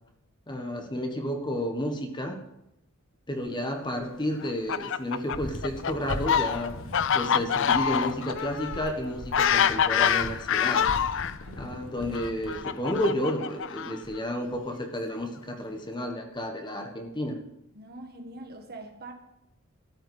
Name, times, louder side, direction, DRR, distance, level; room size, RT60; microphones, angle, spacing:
voice 1, 0.5-2.4 3.3-6.7 7.1-10.9 11.6-17.4, equal, 20° left, 4 dB, 1.4 m, -31 dB
Fowl, 4.4-11.3 12.1-14.2, left 8 dB, 65° left, 0.5 m, -26 dB
sound 1, 5.3-13.1, left 1 dB, 85° left, 1.5 m, -41 dB
voice 2, 11.5-12.0 17.7-19.1, right 2 dB, 50° right, 5 dB, 1.7 m, -44 dB
13.5 x 5.6 x 9.4 m, 0.86 s
head